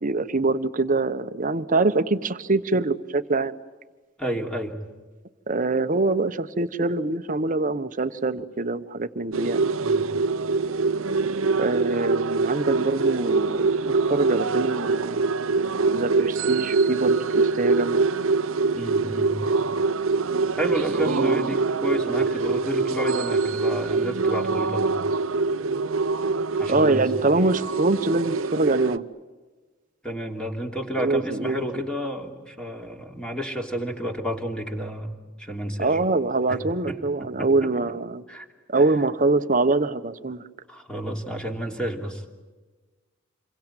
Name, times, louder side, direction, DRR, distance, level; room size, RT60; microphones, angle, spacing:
voice 1, 0.0-3.5 5.5-9.7 11.6-15.3 15.9-18.0 21.0-21.6 26.7-29.0 31.0-31.7 35.8-38.2 38.7-40.4, right 3 dB, 40° right, 11 dB, 1.1 m, -24 dB
voice 2, 4.2-4.8 9.8-10.1 18.7-19.4 20.6-25.0 26.6-27.1 30.0-35.1 35.4-36.0 36.5-36.6 36.9-37.7 38.3-38.4 40.7-42.2, right 1 dB, 5° left, 2 dB, 3.2 m, -31 dB
sound 1, 9.3-29.0, right 4 dB, 85° right, 0.8 m, -24 dB
28.0 x 23.0 x 9.2 m, 1.3 s
head